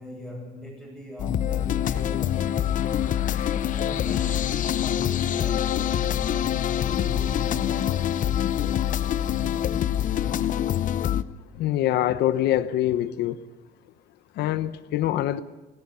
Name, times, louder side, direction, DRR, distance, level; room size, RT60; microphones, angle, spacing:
voice 1, 0.0-3.2 3.4-8.2 11.5-11.6, equal, 10° right, -5 dB, 7.9 m, -41 dB
sound 1, 1.2-11.2, left 10 dB, 50° left, 0.7 m, -25 dB
voice 2, 11.5-13.4 14.4-15.4, left 12 dB, 80° left, 12 dB, 0.9 m, -24 dB
18.0 x 17.5 x 9.8 m, 1.1 s
cardioid pair, 110°, 17 cm